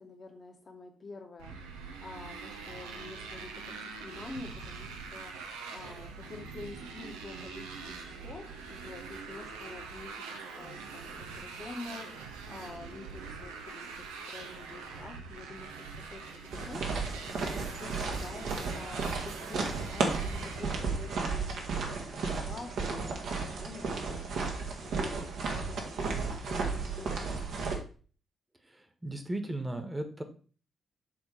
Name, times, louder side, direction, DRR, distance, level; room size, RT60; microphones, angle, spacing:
voice 1, 0.0-1.6 2.0-5.3 5.7-15.7 16.1-16.8 17.4-27.4, left 3 dB, 45° left, 3 dB, 1.8 m, -48 dB
Motorcycle, 1.4-21.2, right 5 dB, 85° right, 0.8 m, -44 dB
sound 1, 16.5-27.8, right 4 dB, 65° right, 1.4 m, -34 dB
voice 2, 28.6-30.2, right 1 dB, 20° right, 7 dB, 1.4 m, -36 dB
7.6 x 3.6 x 5.0 m, 0.40 s
hypercardioid pair, 40°, 0 cm